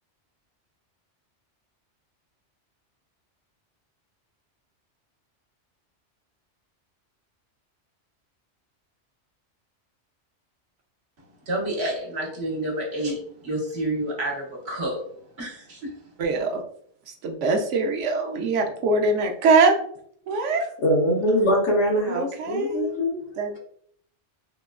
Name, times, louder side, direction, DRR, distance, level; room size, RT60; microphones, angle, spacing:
voice 1, 11.5-13.2 13.4-15.0 15.4-15.8, right 1 dB, 65° right, -3 dB, 1.3 m, -28 dB
voice 2, 16.2-16.6 17.2-19.7 20.3-20.7 22.1-22.9 23.4-23.6, right 3 dB, 85° right, 3 dB, 1.0 m, -22 dB
voice 3, 20.8-23.2, equal, 80° left, -2 dB, 1.2 m, -22 dB
3.6 x 2.3 x 2.3 m, 0.63 s
omnidirectional pair, 1.2 m